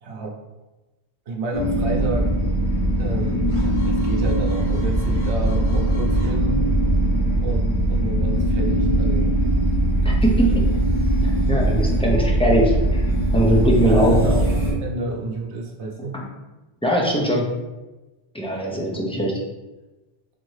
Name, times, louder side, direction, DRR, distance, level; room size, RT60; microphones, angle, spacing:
voice 1, 0.0-0.4 1.3-2.3 3.0-6.7 7.4-9.3 10.0-10.5 13.8-16.2 18.5-18.7, right 2 dB, 90° right, 1 dB, 1.0 m, -30 dB
sound 1, 1.5-14.7, right 1 dB, 90° left, 1.4 m, -20 dB
voice 2, 10.0-10.6 11.2-13.0 13.3-14.2 16.1-16.3 16.8-17.5 18.3-19.3, equal, 10° left, -2 dB, 0.3 m, -21 dB
4.3 x 2.7 x 3.1 m, 1.1 s
omnidirectional pair, 1.1 m